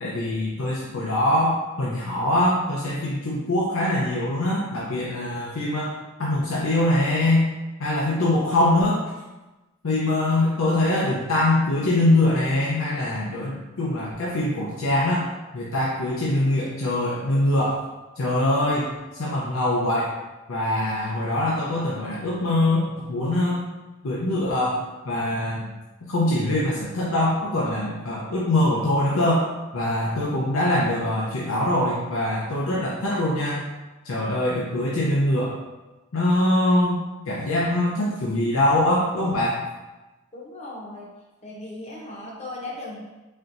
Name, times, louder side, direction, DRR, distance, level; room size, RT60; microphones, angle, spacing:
voice 1, 0.0-5.9 6.2-7.5 7.8-9.0 9.8-15.3 15.5-17.8 18.2-18.9 19.2-20.1 20.5-23.6 24.0-25.7 26.1-29.4 29.7-33.6 34.0-35.5 36.1-39.5, left 1 dB, 80° left, -5 dB, 0.7 m, -23 dB
voice 2, 40.3-41.1 41.4-43.1, left 2 dB, 30° left, -2 dB, 0.9 m, -37 dB
4.4 x 4.3 x 2.6 m, 1.1 s
head